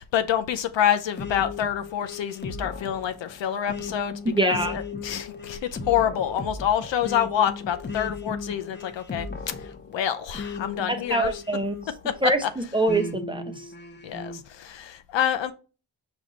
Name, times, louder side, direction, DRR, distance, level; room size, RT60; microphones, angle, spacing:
voice 1, 0.0-4.1 4.4-5.6 5.9-9.5 9.9-11.3 12.0-12.1 12.4-12.5 14.0-15.5, left 9 dB, 65° left, 0.7 m, -27 dB
sound 1, 1.2-12.2 12.9-14.4, left 4 dB, 20° left, 0.8 m, -36 dB
voice 2, 4.2-4.7 10.9-11.7 12.2-13.7, right 2 dB, 10° right, 0.7 m, -24 dB
5.1 x 2.4 x 4.0 m
cardioid pair, 65°, 49 cm